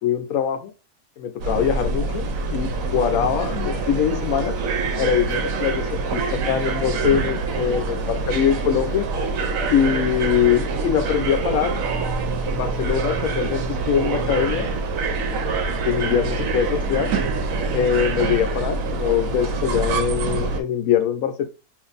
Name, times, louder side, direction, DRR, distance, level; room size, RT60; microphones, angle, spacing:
voice 1, 0.0-0.7 1.2-4.5 5.0-9.1 9.7-11.8 12.5-14.7 15.8-17.1 17.7-21.5, left 9 dB, 70° left, 7 dB, 0.9 m, -23 dB
sound 1, 1.4-20.6, right 3 dB, 70° right, 0.9 m, -25 dB
2.5 x 2.5 x 3.9 m, 0.31 s
omnidirectional pair, 1.7 m